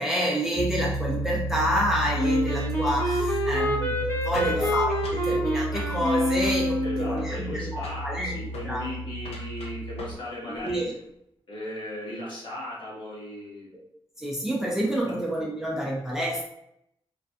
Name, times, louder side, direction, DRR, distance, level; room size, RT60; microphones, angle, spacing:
voice 1, 0.0-8.3 8.6-8.9 10.5-10.9 13.7-13.8 14.2-16.4, equal, 5° right, -5 dB, 0.5 m, -28 dB
Piano, 0.6-10.2, right 1 dB, 90° right, 0.5 m, -33 dB
Wind instrument woodwind instrument, 2.2-7.2, equal, 25° left, 0.8 m, -27 dB
sound 1, 4.3-5.3 5.7-6.0 6.4-6.9 7.2-7.6 7.8-8.1 8.5-8.7 9.2-10.3 10.5-10.9, left 1 dB, 80° left, 0.5 m, -41 dB
voice 2, 4.4-4.7 6.8-10.9 11.5-13.7 15.0-15.1, left 1 dB, 55° left, -6 dB, 1.1 m, -37 dB
2.4 x 2.2 x 2.4 m, 0.76 s
wide cardioid pair, 120°, 10 cm